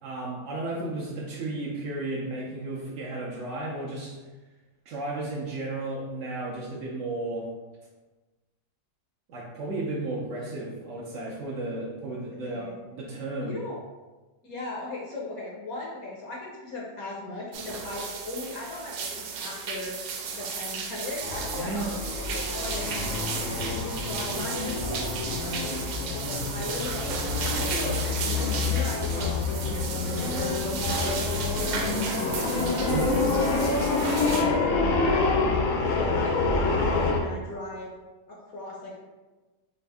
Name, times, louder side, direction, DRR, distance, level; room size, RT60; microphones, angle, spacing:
voice 1, 0.0-4.2 4.9-7.5 9.3-12.7 12.9-13.6 21.6-21.9 32.9-33.1, right 2 dB, 70° right, -4 dB, 0.7 m, -33 dB
voice 2, 12.3-12.8 13.4-13.8 14.4-20.0 20.3-37.9 38.4-38.9, left 2 dB, 65° left, -3 dB, 1.0 m, -38 dB
sound 1, 17.5-34.4, right 5 dB, 85° right, 1.3 m, -34 dB
sound 2, 21.2-37.2, left 3 dB, 85° left, 0.6 m, -27 dB
4.4 x 2.5 x 3.4 m, 1.2 s
omnidirectional pair, 2.0 m